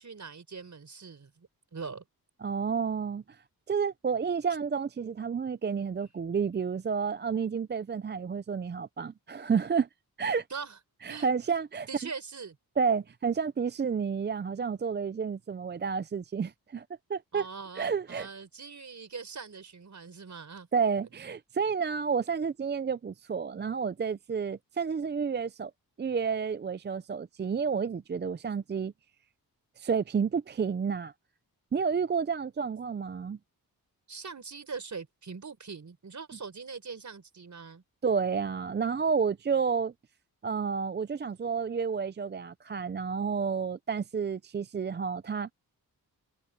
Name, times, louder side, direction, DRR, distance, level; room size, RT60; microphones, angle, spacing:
voice 1, 0.0-2.0 10.5-10.8 11.1-11.3 11.9-12.6 17.3-20.7 34.1-37.8, right 5 dB, 50° right, 4.4 m, -42 dB
voice 2, 2.4-9.9 10.2-10.5 11.0-11.9 12.8-17.5 17.8-18.3 20.7-25.7 26.0-28.9 29.8-31.1 31.7-33.4 38.0-39.9 40.4-45.5, right 6 dB, 30° right, 0.4 m, -30 dB
wide cardioid pair, 95°, 38 cm